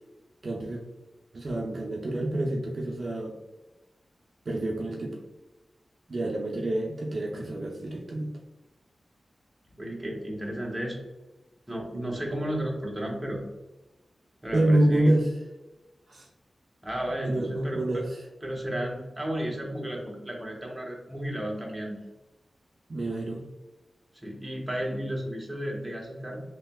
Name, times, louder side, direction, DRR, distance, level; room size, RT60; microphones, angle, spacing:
voice 1, 0.4-0.8 1.3-3.3 4.5-5.2 6.1-8.3 14.5-15.3 16.1-16.3 17.2-18.2 22.9-23.5, right 1 dB, 55° right, -1 dB, 0.5 m, -27 dB
voice 2, 9.8-11.0 11.7-13.4 14.4-15.1 16.8-17.8 18.4-22.0 24.1-26.4, right 1 dB, 15° right, -1 dB, 0.9 m, -33 dB
3.3 x 2.8 x 2.2 m, 1.1 s
wide cardioid pair, 70°, 0 cm